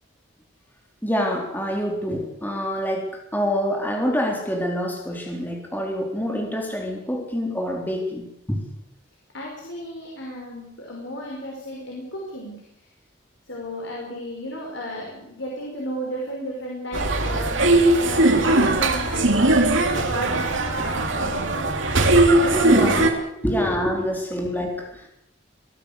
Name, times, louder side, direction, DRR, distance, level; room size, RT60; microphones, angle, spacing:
voice 1, 1.0-8.6 22.5-23.1 23.4-25.1, equal, 10° left, 1 dB, 3.8 m, -26 dB
voice 2, 9.3-12.9 13.5-21.8 22.3-23.0 23.5-23.7, equal, 75° left, -2 dB, 5.9 m, -34 dB
sound 1, 16.9-23.1, right 2 dB, 80° right, 3.3 m, -19 dB
23.5 x 17.5 x 8.4 m, 0.80 s
head